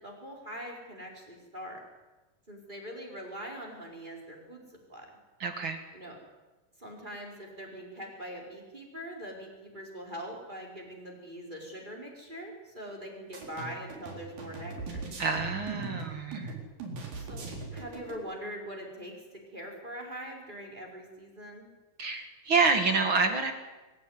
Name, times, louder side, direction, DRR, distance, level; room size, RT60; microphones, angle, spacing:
voice 1, 0.0-1.8 2.5-5.1 5.9-6.2 6.8-15.1 17.1-21.7, equal, 15° right, 0 dB, 4.8 m, -42 dB
voice 2, 5.4-5.8 15.2-16.5 22.0-23.5, right 4 dB, 45° right, 7 dB, 1.9 m, -27 dB
sound 1, 13.3-18.2, right 3 dB, 75° right, 5.6 m, -40 dB
24.5 x 15.0 x 9.7 m, 1.2 s
omnidirectional pair, 4.0 m